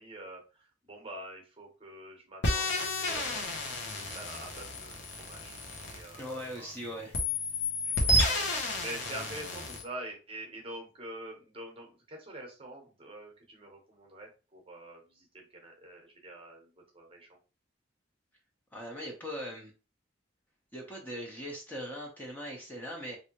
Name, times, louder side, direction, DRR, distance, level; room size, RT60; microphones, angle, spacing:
voice 1, 0.0-3.4 4.1-4.9 5.3-5.6 5.8-6.7 7.8-8.4 8.7-16.7 16.9-17.4, right 1 dB, 30° right, 1 dB, 0.9 m, -45 dB
sound 1, 2.4-6.7 7.1-9.8, left 1 dB, 65° left, 0.9 m, -31 dB
voice 2, 6.2-7.2 18.7-19.7 20.7-23.2, equal, 10° left, -2 dB, 0.7 m, -40 dB
3.3 x 2.6 x 2.9 m, 0.32 s
head